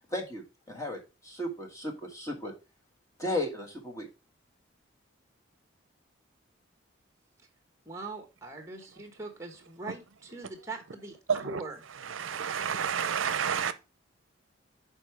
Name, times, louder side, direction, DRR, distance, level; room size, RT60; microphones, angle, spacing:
voice 1, 0.1-2.5 3.2-4.1, left 1 dB, 15° left, 1.4 m, -35 dB
voice 2, 7.8-11.8, right 3 dB, 15° right, 1.3 m, -41 dB
voice 3, 11.3-11.6 12.0-13.7, right 7 dB, 80° right, 0.6 m, -30 dB
6.4 x 4.5 x 4.6 m
head